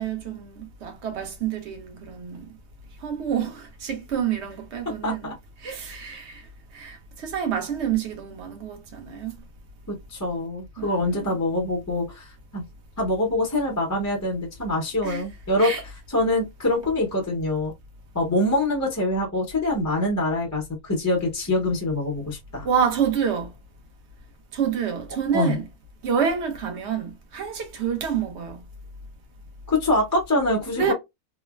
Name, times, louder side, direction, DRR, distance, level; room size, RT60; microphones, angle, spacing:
voice 1, 0.0-2.5 3.0-5.3 5.6-6.5 6.7-9.4 10.8-11.3 15.0-15.2 15.6-15.8 22.6-23.5 24.5-25.7 26.0-28.6 30.8-30.9, right 7 dB, 55° right, 0.9 m, -28 dB
voice 2, 4.9-5.3 9.9-12.6 13.0-15.7 16.1-17.7 18.1-22.7 25.3-25.6 29.7-30.9, left 1 dB, 20° left, 0.5 m, -25 dB
3.1 x 2.1 x 2.3 m
omnidirectional pair, 1.6 m